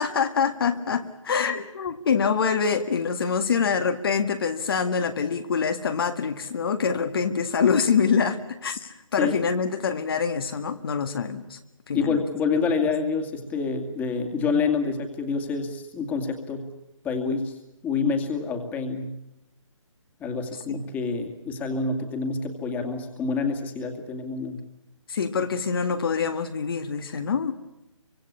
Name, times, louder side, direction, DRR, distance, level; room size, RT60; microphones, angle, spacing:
voice 1, 0.0-11.6 11.9-12.2 20.7-20.8 25.1-27.5, left 6 dB, 45° left, 6 dB, 1.8 m, -25 dB
voice 2, 11.9-16.7 17.0-17.5 17.8-19.2 20.2-24.6, left 4 dB, 10° left, 5 dB, 2.3 m, -27 dB
25.5 x 24.5 x 8.5 m, 0.90 s
figure-of-eight pair, 150°, 17 cm